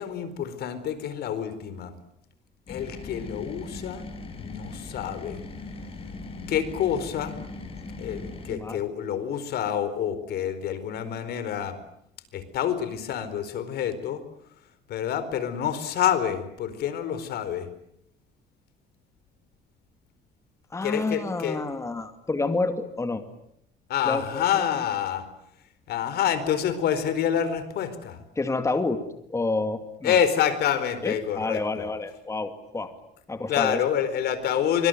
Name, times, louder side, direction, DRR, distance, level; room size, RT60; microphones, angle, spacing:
voice 1, 0.0-1.9 2.7-4.1 4.3-5.4 6.5-7.3 8.0-11.8 12.3-14.2 14.9-17.7 20.8-21.7 23.9-25.3 25.9-28.2 30.0-31.9 33.5-34.9, left 9 dB, 70° left, 12 dB, 4.5 m, -27 dB
sound 1, 2.7-8.5, left 3 dB, 35° left, 7.7 m, -39 dB
voice 2, 8.5-8.9 20.7-23.2 24.1-24.6 28.4-29.0 29.3-30.2 31.0-32.9 33.3-33.8, left 3 dB, 15° left, 8 dB, 2.5 m, -29 dB
26.0 x 24.5 x 9.3 m, 0.75 s
cardioid pair, 110°, 17 cm